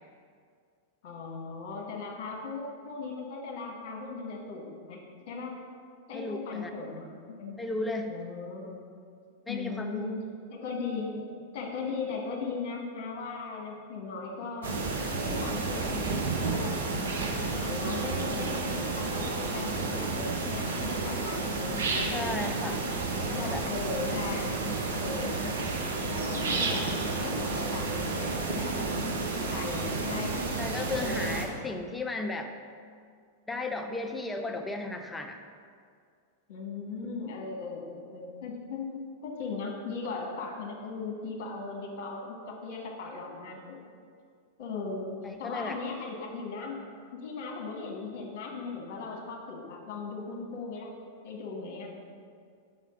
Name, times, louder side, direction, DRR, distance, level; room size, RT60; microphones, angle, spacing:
voice 1, 1.0-5.0 5.3-5.6 6.1-7.6 8.1-8.9 9.5-10.2 10.5-11.3 11.5-14.7 15.1-16.8 17.5-22.3 23.2-24.6 24.9-25.5 26.1-28.8 29.1-30.4 30.9-31.4 36.5-43.9 44.6-46.8 47.2-50.9 51.2-51.9, left 4 dB, 50° left, 0 dB, 1.4 m, -38 dB
voice 2, 6.1-6.7 7.6-8.1 9.5-10.2 22.1-22.8 23.3-23.6 30.6-32.5 33.5-35.4 45.2-45.8, left 2 dB, 10° left, 4 dB, 0.5 m, -35 dB
sound 1, 14.6-31.4, right 3 dB, 65° right, 1.0 m, -31 dB
5.5 x 4.9 x 6.1 m, 2.2 s
figure-of-eight pair, 95°, 0 cm